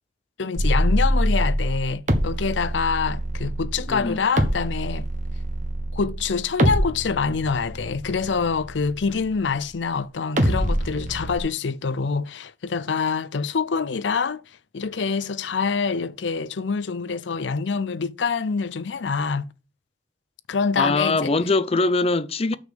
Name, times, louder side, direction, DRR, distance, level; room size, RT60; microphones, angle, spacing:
voice 1, 0.4-5.1 5.9-14.4 14.7-19.4 20.5-21.3, left 5 dB, 75° left, 0.6 m, -26 dB
sound 1, 0.6-9.8 10.4-11.4, equal, 45° right, 1.4 m, -25 dB
voice 2, 3.9-4.2 20.8-22.6, left 3 dB, 35° left, 0.6 m, -22 dB
6.2 x 5.5 x 7.0 m
head